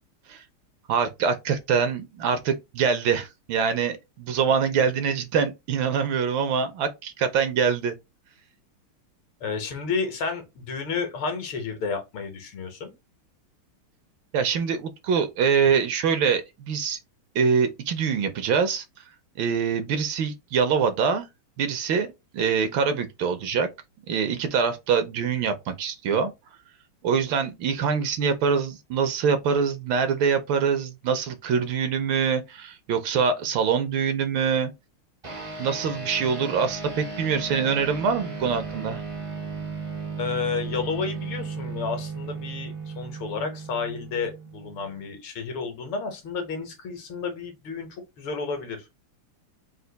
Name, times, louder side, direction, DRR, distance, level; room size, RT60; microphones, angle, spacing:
voice 1, 0.9-7.9 14.3-17.0 17.3-18.8 19.4-21.2 21.6-22.1 22.3-23.7 24.1-26.3 27.0-34.7 35.6-39.0, right 6 dB, 75° right, 1.3 m, -24 dB
voice 2, 9.4-12.9 40.2-48.8, left 5 dB, 70° left, 1.9 m, -31 dB
sound 1, 35.2-45.0, right 4 dB, 45° right, 0.4 m, -35 dB
4.3 x 2.5 x 3.9 m
omnidirectional pair, 2.4 m